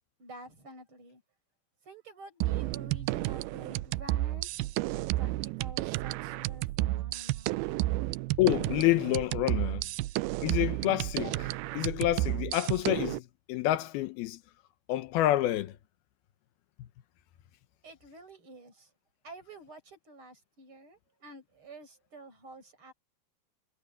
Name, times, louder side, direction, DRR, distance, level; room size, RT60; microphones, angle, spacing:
voice 1, 0.2-1.2 1.8-5.3 5.6-7.6 17.8-18.9 19.2-22.9, right 1 dB, 35° right, 7.3 m, -50 dB
sound 1, 2.4-13.2, right 18 dB, 90° right, 2.5 m, -32 dB
voice 2, 8.4-9.8 10.4-13.2 13.5-14.4 14.9-15.7, left 15 dB, 85° left, 2.9 m, -28 dB
omnidirectional pair, 4.3 m